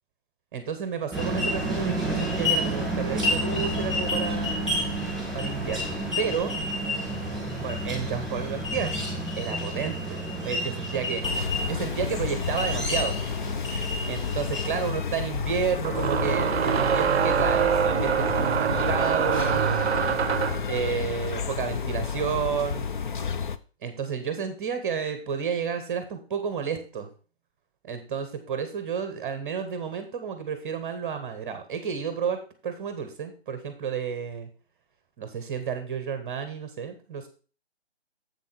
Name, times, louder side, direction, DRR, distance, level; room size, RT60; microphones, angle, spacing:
voice 1, 0.5-4.7 5.3-6.5 7.6-9.0 9.4-11.2 11.6-13.2 14.1-19.6 20.7-22.9 23.8-27.1 27.8-34.5 35.2-37.3, right 7 dB, 15° right, 9 dB, 0.8 m, -31 dB
sound 1, 1.1-14.9, equal, ahead, 2.5 m, -29 dB
sound 2, 11.2-23.6, left 6 dB, 50° left, 0.7 m, -31 dB
sound 3, 13.9-14.0 15.8-20.7, right 8 dB, 75° right, 0.5 m, -25 dB
7.5 x 7.2 x 4.3 m, 0.36 s
figure-of-eight pair, 150°, 32 cm